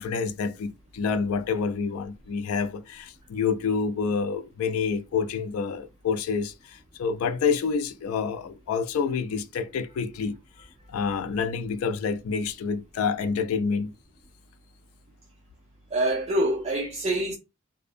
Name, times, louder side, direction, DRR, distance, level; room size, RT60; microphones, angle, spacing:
voice 1, 0.0-10.4 10.9-13.9, left 5 dB, 85° left, 0.3 m, -28 dB
voice 2, 15.9-17.3, right 1 dB, 30° right, 0.5 m, -25 dB
2.5 x 2.0 x 2.5 m
head